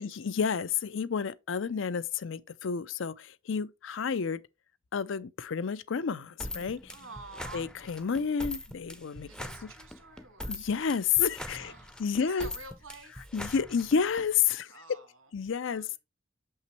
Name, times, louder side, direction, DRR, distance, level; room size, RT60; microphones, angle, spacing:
voice 1, 0.0-4.4 4.9-6.9 7.5-9.3 10.5-11.7 12.0-12.5 13.3-14.7 15.3-15.9, left 6 dB, 70° left, 0.5 m, -30 dB
sound 1, 6.4-14.2, left 1 dB, 5° left, 0.5 m, -42 dB
voice 2, 6.9-7.7 9.3-10.6 11.5-13.3 14.7-15.3 15.6-16.0, right 3 dB, 90° right, 1.8 m, -49 dB
6.8 x 5.6 x 3.1 m
head